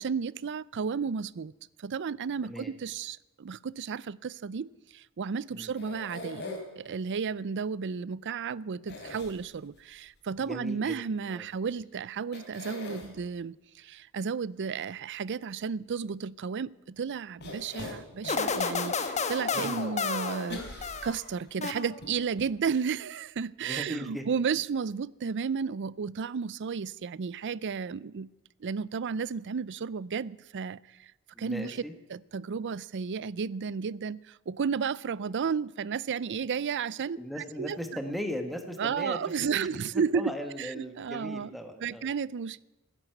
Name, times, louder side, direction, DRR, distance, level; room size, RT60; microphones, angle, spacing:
voice 1, 0.0-1.5 1.8-6.5 6.8-28.3 28.6-31.1 31.4-31.8 32.1-37.8 38.8-40.3 40.6-41.5 41.8-42.6, right 6 dB, 55° right, 0.5 m, -33 dB
sound 1, 5.7-6.9 8.9-9.8 11.7-11.8 12.3-13.1 17.4-18.5 19.0-19.1 20.5-21.5 22.0-22.1 22.4-22.5, left 2 dB, 50° left, 3.6 m, -41 dB
voice 2, 10.4-11.0 11.3-11.5 19.5-19.9 23.6-24.2 31.3-31.9 37.2-39.7 40.1-42.1, equal, ahead, 1.6 m, -38 dB
sound 2, 18.3-21.2 21.6-22.3, left 5 dB, 30° left, 1.1 m, -31 dB
15.5 x 10.5 x 8.0 m
head